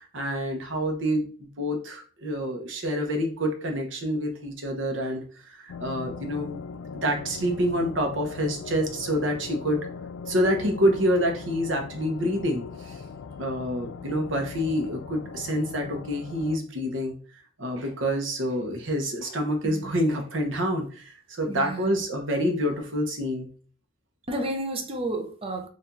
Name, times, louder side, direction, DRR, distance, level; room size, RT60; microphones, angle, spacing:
voice 1, 0.0-6.6 7.0-9.9 10.3-13.0 13.4-17.2 17.6-23.5, equal, 70° right, 0.9 m, -27 dB
sound 1, 5.7-16.6, left 5 dB, 70° left, 0.3 m, -40 dB
voice 2, 21.5-22.0 24.3-25.7, right 1 dB, 30° right, 0.6 m, -32 dB
4.5 x 2.6 x 2.6 m
head